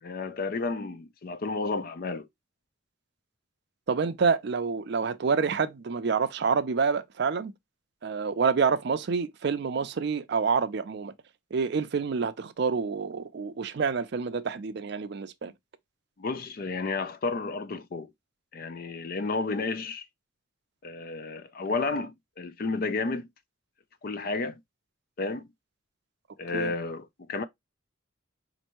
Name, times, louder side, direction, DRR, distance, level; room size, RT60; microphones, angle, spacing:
voice 1, 0.0-2.3 16.2-18.1 18.5-20.0 20.8-23.3 24.0-24.6 25.2-25.5 26.4-27.4, left 3 dB, 45° left, 0.4 m, -32 dB
voice 2, 3.9-7.5 8.0-11.1 11.5-15.5 26.5-26.7, right 5 dB, 55° right, 0.4 m, -27 dB
4.3 x 2.6 x 2.9 m
head